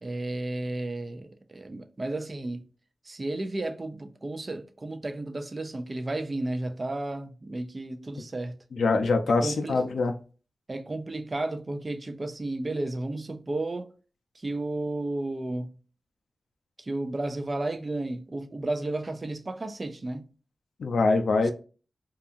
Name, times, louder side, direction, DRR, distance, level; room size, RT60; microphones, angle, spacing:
voice 1, 0.0-2.6 3.0-8.6 9.3-9.8 10.7-13.9 14.4-15.7 16.8-20.3 21.4-21.5, right 2 dB, 35° right, 0.4 m, -33 dB
voice 2, 8.7-10.1 20.8-21.5, left 3 dB, 80° left, 0.3 m, -24 dB
2.7 x 2.3 x 2.4 m
wide cardioid pair, 95°, 0 cm